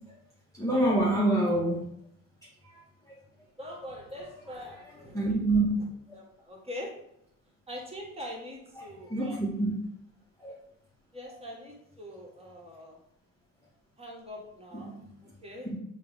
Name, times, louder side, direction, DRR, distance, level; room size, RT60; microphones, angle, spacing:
voice 1, 0.6-1.9 5.1-5.7 9.1-9.7 10.4-10.5 14.7-15.0, right 2 dB, 5° left, -5 dB, 1.0 m, -26 dB
voice 2, 3.6-5.8 6.1-6.9 7.7-9.6 11.1-13.0 14.0-15.7, left 1 dB, 15° right, -2 dB, 1.6 m, -43 dB
6.5 x 2.4 x 3.2 m, 0.77 s
figure-of-eight pair, 60°, 44 cm